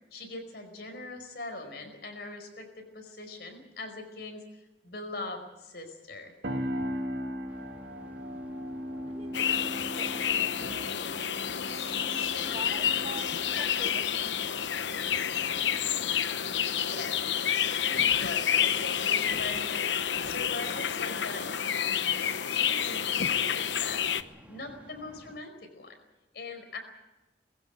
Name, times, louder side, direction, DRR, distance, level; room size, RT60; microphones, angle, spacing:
voice 1, 0.1-4.4 4.8-6.3 16.8-17.2 17.8-19.9 20.2-24.0 24.5-26.0 26.3-26.8, left 2 dB, 60° left, 5 dB, 4.9 m, -42 dB
sound 1, 6.4-16.2, equal, 65° right, 2.2 m, -39 dB
sound 2, 7.5-25.4, equal, 10° right, 1.7 m, -54 dB
voice 2, 9.1-11.3 11.7-14.4, right 1 dB, 35° right, 5 dB, 1.9 m, -46 dB
sound 3, 9.3-24.2, left 8 dB, 80° left, 0.9 m, -29 dB
21.5 x 16.0 x 9.5 m, 1.0 s
head